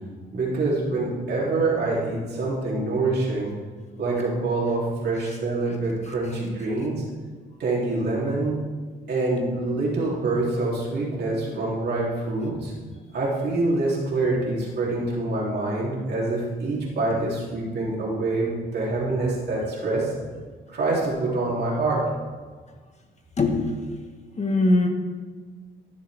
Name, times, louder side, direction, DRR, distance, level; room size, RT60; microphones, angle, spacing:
voice 1, 0.3-3.5 4.0-7.0 7.6-8.6 9.1-12.7 13.1-20.1 20.7-22.1, right 2 dB, 55° right, -5 dB, 3.3 m, -25 dB
voice 2, 23.4-23.8 24.4-24.9, left 2 dB, 35° left, 2 dB, 1.5 m, -21 dB
14.5 x 6.8 x 3.5 m, 1.5 s
cardioid pair, 90°, 20 cm